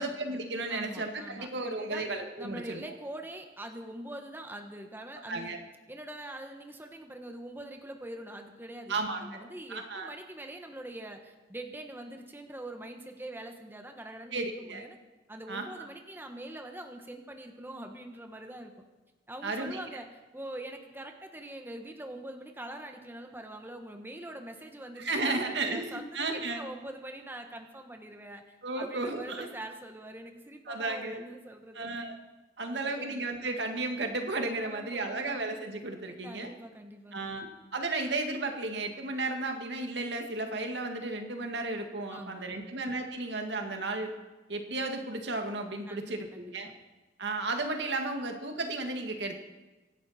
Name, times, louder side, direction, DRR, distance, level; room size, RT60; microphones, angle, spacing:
voice 1, 0.0-2.9 5.3-5.6 8.9-9.4 9.7-10.1 14.3-14.9 15.5-15.9 19.4-19.9 25.0-26.7 28.6-29.5 30.7-31.2 31.7-32.2 32.6-36.5 37.1-44.1 44.5-46.7 47.2-49.4, right 2 dB, 90° right, 4 dB, 2.0 m, -34 dB
voice 2, 0.7-2.0 2.4-5.6 5.9-15.0 15.3-18.7 19.3-20.1 20.3-32.0 32.6-33.3 34.6-35.4 36.0-37.3 42.1-42.8 45.9-46.5, right 1 dB, 10° right, 4 dB, 1.3 m, -44 dB
25.0 x 11.0 x 4.4 m, 1.2 s
head